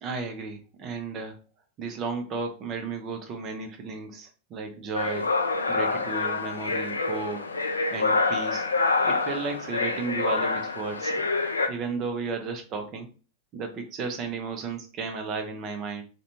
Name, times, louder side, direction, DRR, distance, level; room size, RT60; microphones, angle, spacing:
voice 1, 0.0-1.4 1.8-5.3 5.7-7.4 7.9-8.7 9.0-13.1 13.5-16.0, right 4 dB, 35° right, 5 dB, 0.6 m, -34 dB
sound 1, 4.9-11.7, left 3 dB, 75° left, 0.3 m, -27 dB
2.5 x 2.2 x 2.9 m, 0.35 s
figure-of-eight pair, 90°, 0 cm